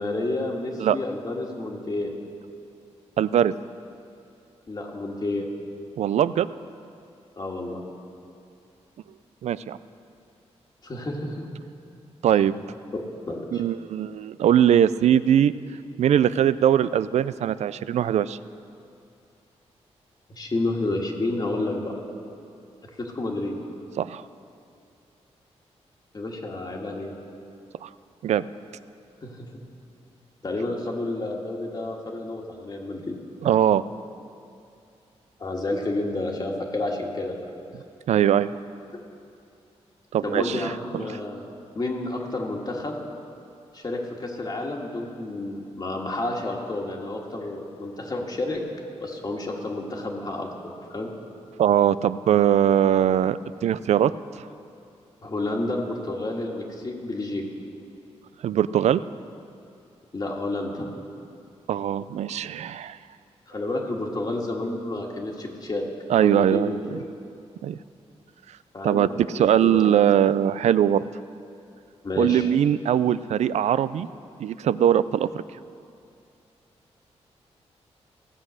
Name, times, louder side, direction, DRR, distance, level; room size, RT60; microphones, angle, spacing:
voice 1, 0.0-2.1 4.7-5.5 7.4-7.8 10.8-11.4 12.9-13.6 20.3-21.9 23.0-23.5 26.1-27.1 29.2-29.5 30.4-33.2 35.4-37.3 38.9-39.0 40.2-43.0 43.7-48.6 49.0-51.1 55.2-57.4 60.1-60.9 63.5-65.9 66.2-67.0 68.7-69.8 72.0-72.5, left 2 dB, 35° left, -1 dB, 1.7 m, -30 dB
voice 2, 3.2-3.5 6.0-6.5 9.4-9.8 12.2-12.5 13.5-15.5 16.0-18.4 24.0-24.2 27.8-27.9 28.2-28.4 33.4-33.8 38.1-38.5 40.1-41.2 51.6-54.1 58.4-59.0 61.7-63.0 66.1-67.0 67.6-67.8 68.8-71.0 72.2-74.1 74.4-75.4, right 10 dB, 75° right, 16 dB, 0.4 m, -21 dB
16.5 x 7.4 x 6.4 m, 2.6 s
cardioid pair, 95°, 11 cm